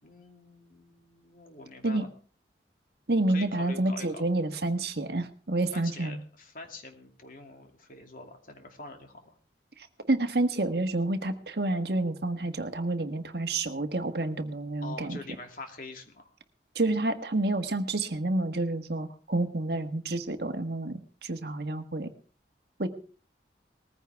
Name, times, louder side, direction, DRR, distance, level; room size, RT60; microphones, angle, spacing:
voice 1, 0.0-2.1 3.3-4.3 5.7-9.3 14.8-16.3, left 2 dB, 50° left, 4 dB, 2.6 m, -45 dB
voice 2, 3.1-6.2 10.0-15.2 16.7-22.1 22.8-22.9, right 2 dB, 65° right, 8 dB, 1.4 m, -29 dB
20.0 x 15.0 x 3.5 m, 0.40 s
head